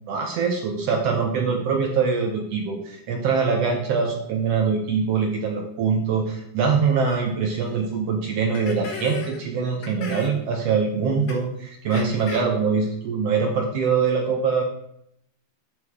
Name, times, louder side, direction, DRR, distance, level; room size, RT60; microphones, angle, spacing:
voice 1, 0.1-14.6, right 5 dB, 75° right, 2 dB, 1.4 m, -23 dB
sound 1, 7.0-7.2 7.6-7.7 8.5-9.4 9.8-10.4 11.3-11.4 11.9-12.4, left 4 dB, 60° left, 1.2 m, -35 dB
11.0 x 6.8 x 3.6 m, 0.74 s
omnidirectional pair, 4.2 m